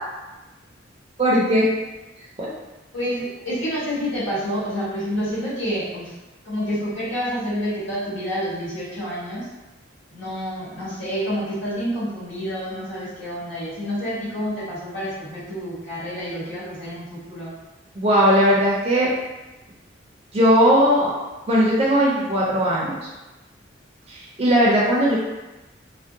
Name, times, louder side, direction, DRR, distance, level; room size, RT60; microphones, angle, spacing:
voice 1, 1.2-1.7 2.4-2.5 18.0-19.1 20.3-21.1 21.5-23.0 24.1-25.2, equal, 30° right, -5 dB, 0.5 m, -18 dB
voice 2, 2.9-6.1 6.4-9.5 10.1-17.5, equal, 85° left, -9 dB, 1.5 m, -28 dB
3.4 x 2.1 x 2.6 m, 1.1 s
head